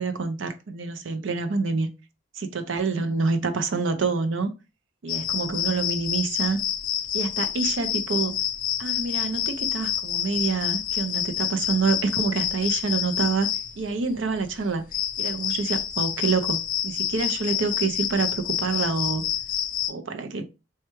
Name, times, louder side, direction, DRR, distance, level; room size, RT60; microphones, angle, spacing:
voice 1, 0.0-1.9 2.3-4.5 5.0-6.6 7.1-8.4 8.8-13.5 13.8-14.8 15.2-16.6 16.8-19.2 19.9-20.4, right 4 dB, 70° right, 0.5 m, -27 dB
sound 1, 5.1-19.9, left 10 dB, 45° left, 0.3 m, -28 dB
4.4 x 2.3 x 3.0 m
head